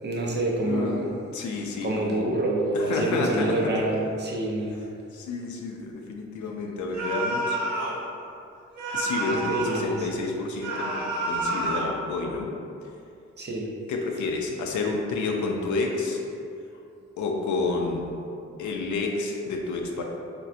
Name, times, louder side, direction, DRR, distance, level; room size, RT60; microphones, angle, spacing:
voice 1, 0.0-1.1 1.8-4.7 9.3-10.0 13.4-13.7, right 1 dB, 35° right, -2 dB, 0.5 m, -27 dB
voice 2, 0.6-1.0 1.3-2.2 2.7-3.9 5.1-7.6 8.9-12.5 13.9-16.2 17.2-18.1 18.6-20.0, left 3 dB, 85° left, 1 dB, 0.5 m, -30 dB
sound 1, 6.9-8.0 8.8-9.9 10.6-12.0, right 2 dB, 80° right, 0.8 m, -29 dB
4.1 x 2.2 x 2.5 m, 2.6 s
cardioid pair, 90°, 29 cm